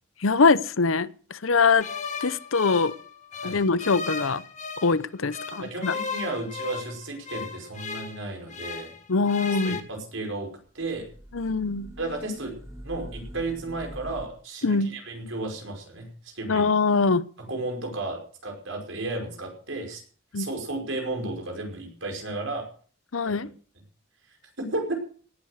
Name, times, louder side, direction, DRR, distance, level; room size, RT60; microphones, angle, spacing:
voice 1, 0.2-1.9 2.2-2.9 3.4-4.4 4.8-5.9 9.1-9.8 11.3-11.9 14.6-14.9 16.5-17.3 20.3-20.5 23.1-23.5, left 4 dB, 90° left, 0.8 m, -23 dB
Orchestral Strings, 1.8-5.0 5.3-9.0 9.3-9.8, left 4 dB, 40° left, 1.7 m, -36 dB
voice 2, 5.6-8.9 9.5-11.1 12.0-12.6 12.8-16.7 17.4-20.0 20.4-22.7 24.6-24.9, right 2 dB, 75° right, 5.3 m, -33 dB
sound 1, 10.7-14.3, equal, 15° right, 2.0 m, -43 dB
18.0 x 8.9 x 6.4 m
head